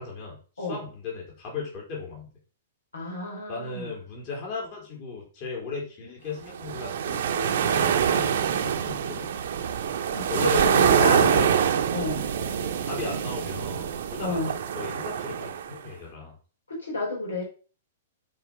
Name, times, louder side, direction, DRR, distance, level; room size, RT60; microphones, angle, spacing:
voice 1, 0.0-2.3 3.5-9.3 10.3-11.6 12.3-16.3, left 4 dB, 40° left, -2 dB, 3.9 m, -36 dB
voice 2, 2.9-3.9 10.1-11.4 11.9-12.3 14.2-14.5 16.7-17.4, left 2 dB, 75° left, -2 dB, 4.0 m, -30 dB
sound 1, 6.5-15.8, right 8 dB, 55° right, 1.0 m, -25 dB
8.9 x 4.8 x 5.7 m, 0.37 s
figure-of-eight pair, 105°, 0 cm